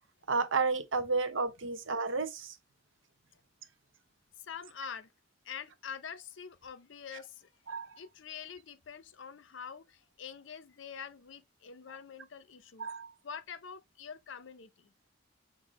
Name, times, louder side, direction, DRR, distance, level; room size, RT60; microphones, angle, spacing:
voice 1, 0.3-2.6 7.7-8.0 12.8-13.1, right 4 dB, 75° right, 0.7 m, -31 dB
voice 2, 4.4-5.1 5.4-7.5 8.0-12.9 13.2-14.9, left 7 dB, 70° left, 0.5 m, -45 dB
5.8 x 2.6 x 3.0 m
head